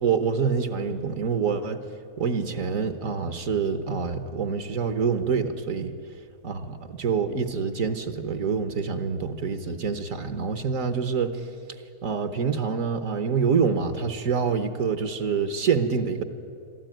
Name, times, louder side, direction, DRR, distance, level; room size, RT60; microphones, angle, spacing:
voice 1, 0.0-1.8 2.2-5.9 6.4-11.4 12.0-16.2, right 6 dB, 65° right, 9 dB, 1.4 m, -26 dB
22.5 x 13.5 x 9.0 m, 2.4 s
omnidirectional pair, 1.5 m